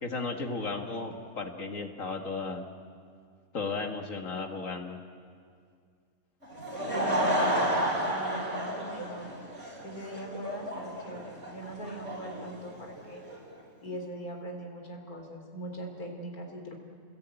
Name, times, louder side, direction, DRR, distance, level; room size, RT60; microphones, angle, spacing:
voice 1, 0.0-2.6 3.5-5.0, left 3 dB, 60° left, 4 dB, 2.1 m, -34 dB
Laughter / Crowd, 6.4-13.4, equal, 55° right, 5.9 m, -31 dB
voice 2, 6.8-9.3 9.8-13.2 13.8-16.7, right 1 dB, 85° left, 2 dB, 3.9 m, -41 dB
29.5 x 20.5 x 9.0 m, 2.1 s
omnidirectional pair, 1.5 m